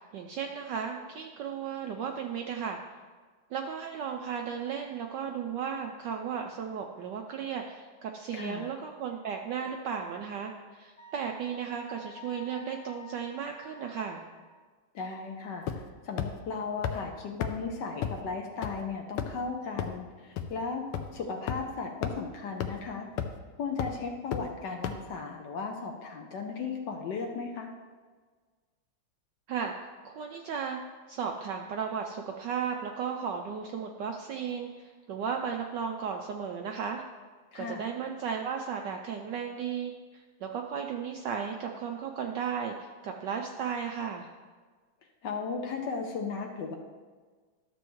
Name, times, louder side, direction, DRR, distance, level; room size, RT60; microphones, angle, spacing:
voice 1, 0.0-2.8 3.5-14.3 29.5-29.7 30.0-30.8 31.1-37.0 37.5-44.3, right 7 dB, 80° right, 3 dB, 1.0 m, -35 dB
voice 2, 8.3-8.7 14.9-15.7 16.0-20.9 21.1-23.1 23.6-27.7 37.5-37.9 45.2-46.8, left 4 dB, 65° left, 2 dB, 1.2 m, -36 dB
Wind instrument woodwind instrument, 11.0-14.5, left 3 dB, 30° left, 1.3 m, -50 dB
sound 1, 15.7-15.9 16.2-16.3 16.8-16.9 17.4-17.5 18.0-18.1 18.6-18.7 19.2-19.4 19.8-19.9 20.4-20.5 20.9-21.0 21.5-21.6 22.0-22.1 22.6-22.7 23.2-23.4 23.8-23.9 24.3-24.4 24.8-24.9, left 9 dB, 85° left, 1.6 m, -30 dB
12.5 x 7.0 x 3.1 m, 1.5 s
omnidirectional pair, 2.4 m